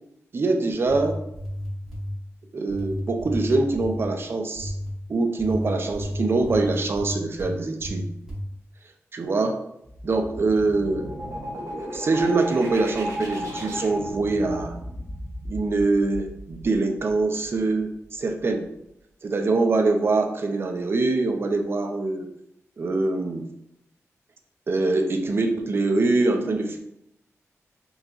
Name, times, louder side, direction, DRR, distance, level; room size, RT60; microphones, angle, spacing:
voice 1, 0.3-1.2 2.5-4.7 5.1-8.1 9.1-9.6 10.0-11.2 11.8-14.8 15.5-18.7 19.2-22.3 22.8-23.5 24.7-26.8, right 3 dB, 45° right, 5 dB, 0.4 m, -24 dB
sound 1, 0.9-2.1 2.7-4.1 4.6-4.9 5.4-7.5 7.8-8.4, equal, 5° right, 1.4 m, -32 dB
sound 2, 9.8-17.5, equal, 80° right, 0.8 m, -35 dB
3.9 x 2.8 x 2.4 m, 0.79 s
wide cardioid pair, 105°, 5 cm